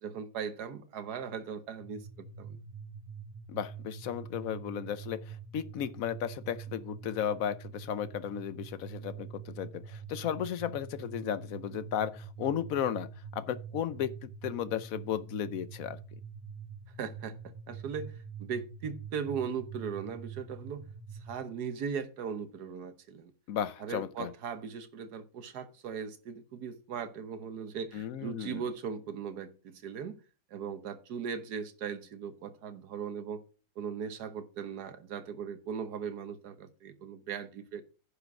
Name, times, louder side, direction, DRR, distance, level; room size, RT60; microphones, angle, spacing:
voice 1, 0.0-2.6 17.0-20.8 21.2-23.3 23.8-30.2 30.5-33.4 33.8-37.8, right 7 dB, 75° right, 1.6 m, -38 dB
sound 1, 1.8-21.4, right 6 dB, 20° right, 1.0 m, -46 dB
voice 2, 3.5-16.0 23.5-24.3 27.9-28.6, left 9 dB, 65° left, 1.0 m, -35 dB
10.0 x 5.1 x 6.0 m
omnidirectional pair, 1.7 m